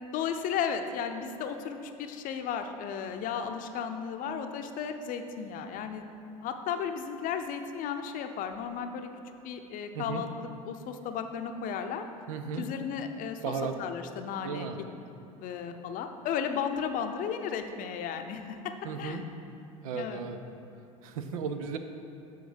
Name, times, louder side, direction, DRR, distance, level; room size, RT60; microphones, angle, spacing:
voice 1, 0.1-6.0 6.4-9.1 9.4-12.1 12.6-13.5 13.8-14.7 15.4-19.2 19.9-20.2, left 7 dB, 50° left, 7 dB, 0.6 m, -34 dB
voice 2, 12.3-12.7 13.4-13.8 14.4-14.8 18.8-19.3 19.8-20.4 21.0-21.8, right 6 dB, 80° right, 7 dB, 0.6 m, -35 dB
7.9 x 3.9 x 5.0 m, 2.8 s
hypercardioid pair, 85°, 18 cm